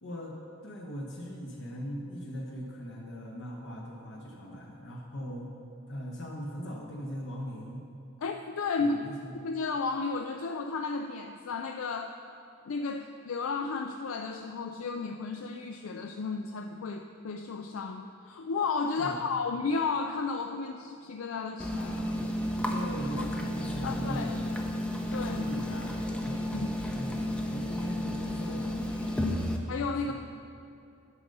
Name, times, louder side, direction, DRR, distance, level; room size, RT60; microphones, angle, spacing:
voice 1, 0.0-0.4 0.6-5.5 5.9-7.9 8.8-9.3 19.0-19.3 22.7-24.4 25.2-28.9 30.1-30.2, equal, 60° left, -2 dB, 1.0 m, -40 dB
voice 2, 8.2-9.0 9.4-12.1 12.6-22.2 23.2-23.3 23.8-24.3 25.1-25.4 26.5-26.7 29.2-30.1, left 4 dB, 85° left, 5 dB, 0.4 m, -33 dB
sound 1, 21.6-29.6, left 1 dB, 5° left, 0.6 m, -32 dB
9.8 x 5.4 x 6.7 m, 2.6 s
head